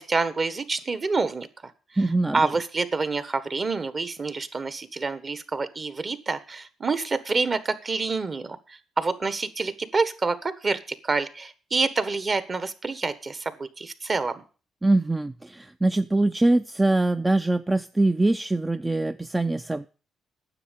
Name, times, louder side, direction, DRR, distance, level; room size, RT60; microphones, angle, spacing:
voice 1, 0.0-1.5 2.3-14.3, right 4 dB, 35° right, 13 dB, 1.4 m, -27 dB
voice 2, 2.0-2.5 14.8-19.9, right 2 dB, 15° right, 10 dB, 0.5 m, -23 dB
9.9 x 7.4 x 8.3 m, 0.36 s
cardioid pair, 90°, 0 cm